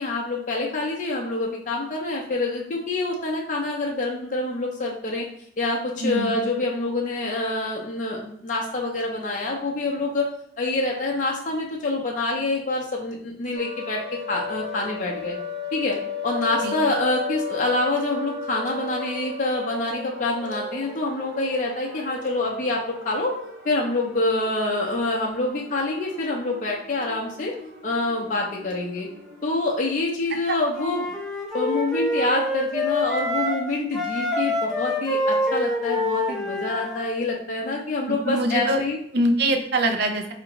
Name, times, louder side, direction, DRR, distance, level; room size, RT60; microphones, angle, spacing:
voice 1, 0.0-5.3 5.6-10.3 10.6-14.0 14.3-15.4 15.7-16.0 16.2-23.3 23.6-27.5 27.8-29.1 29.4-31.1 31.5-39.0, left 2 dB, 45° left, -2 dB, 0.5 m, -26 dB
voice 2, 6.0-6.3 16.6-16.7 30.5-30.6 38.1-38.8 39.1-40.3, right 1 dB, 65° right, 4 dB, 0.6 m, -23 dB
sound 1, 13.5-29.6, left 4 dB, 90° right, 0.8 m, -36 dB
Wind instrument woodwind instrument, 30.7-33.6 33.9-37.1, left 1 dB, ahead, 0.6 m, -26 dB
4.6 x 2.5 x 2.9 m, 0.68 s
head